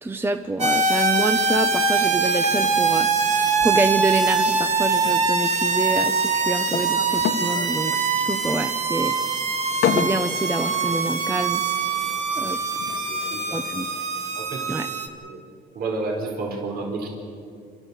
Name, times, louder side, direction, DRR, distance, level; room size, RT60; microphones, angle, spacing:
voice 1, 0.0-9.2 9.9-11.6 12.4-12.6 13.5-13.9 14.7-14.9, right 2 dB, 15° right, 8 dB, 0.8 m, -27 dB
sound 1, 0.6-15.1, right 4 dB, 45° right, 2.0 m, -23 dB
sound 2, 1.9-14.8, left 8 dB, 70° left, 1.4 m, -34 dB
voice 2, 12.9-13.7 13.9-14.0 14.3-14.8 15.2-15.5 15.7-17.1, right 3 dB, 65° right, 1 dB, 4.3 m, -31 dB
29.0 x 13.0 x 8.3 m, 2.4 s
cardioid pair, 110°, 17 cm